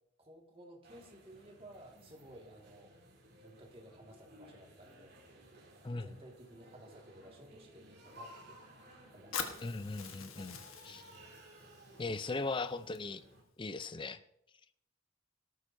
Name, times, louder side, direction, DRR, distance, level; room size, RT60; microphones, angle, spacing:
voice 1, 0.2-2.9 3.4-5.4 6.0-8.6 9.1-9.7 10.9-11.3, right 1 dB, 30° right, 0 dB, 2.0 m, -56 dB
sound 1, 0.8-13.4, equal, 50° right, 2.8 m, -57 dB
voice 2, 5.8-6.2 9.6-10.6 10.8-11.0 12.0-13.2 13.6-14.2, left 3 dB, 25° left, 12 dB, 0.5 m, -38 dB
Fire, 9.3-13.3, left 6 dB, 85° left, 1.4 m, -45 dB
17.5 x 13.0 x 2.7 m, 0.75 s
head